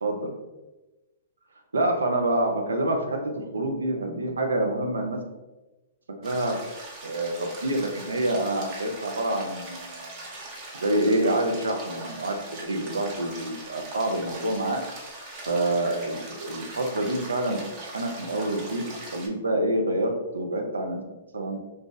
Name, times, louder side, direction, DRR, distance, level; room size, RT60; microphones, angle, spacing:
voice 1, 0.0-0.3 1.7-5.2 6.2-6.6 7.0-10.1 10.8-14.8 15.5-21.0 21.3-21.6, right 1 dB, 85° right, 3 dB, 0.6 m, -27 dB
sound 1, 6.2-19.3, right 2 dB, 35° right, 0.9 m, -41 dB
2.7 x 2.3 x 3.8 m, 1.1 s
hypercardioid pair, 120°, 0 cm